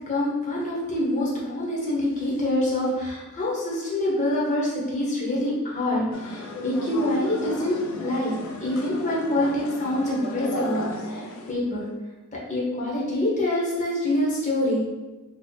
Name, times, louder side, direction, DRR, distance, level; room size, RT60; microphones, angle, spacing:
voice 1, 0.1-11.9 12.3-14.9, left 1 dB, 35° left, -5 dB, 0.9 m, -26 dB
sound 1, 6.1-11.5, left 2 dB, 70° left, 0.4 m, -35 dB
2.8 x 2.5 x 3.9 m, 1.2 s
head